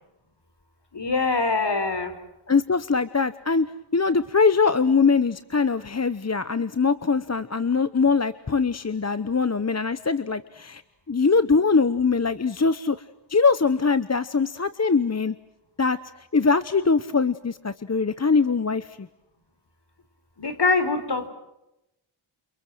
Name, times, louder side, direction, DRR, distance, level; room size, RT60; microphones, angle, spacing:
voice 1, 0.9-2.2 20.4-21.3, left 3 dB, 55° left, 9 dB, 4.2 m, -24 dB
voice 2, 2.5-3.7 3.9-10.8 11.1-13.0 13.3-15.3 15.8-16.0 16.3-19.1, left 4 dB, 30° left, 13 dB, 1.0 m, -22 dB
30.0 x 28.5 x 6.3 m, 0.90 s
wide cardioid pair, 90°, 49 cm